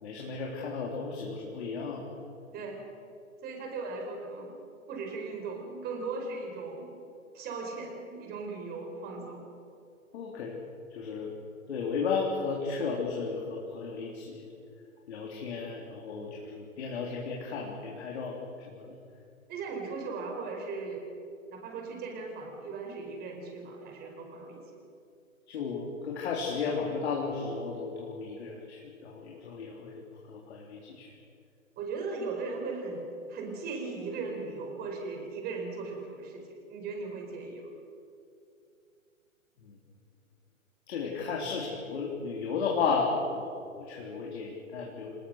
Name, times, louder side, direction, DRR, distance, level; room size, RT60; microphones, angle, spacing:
voice 1, 0.0-2.0 10.1-10.6 10.9-11.3 11.7-14.5 15.1-18.4 18.7-19.0 25.5-31.1 39.6-39.7 40.9-45.1, left 5 dB, 50° left, -2 dB, 3.7 m, -34 dB
voice 2, 2.5-2.9 3.4-4.5 4.9-6.9 7.3-9.5 19.5-21.0 21.5-24.6 31.8-37.7, right 4 dB, 25° right, 2 dB, 4.9 m, -38 dB
26.5 x 20.0 x 6.5 m, 2.6 s
figure-of-eight pair, 130°, 41 cm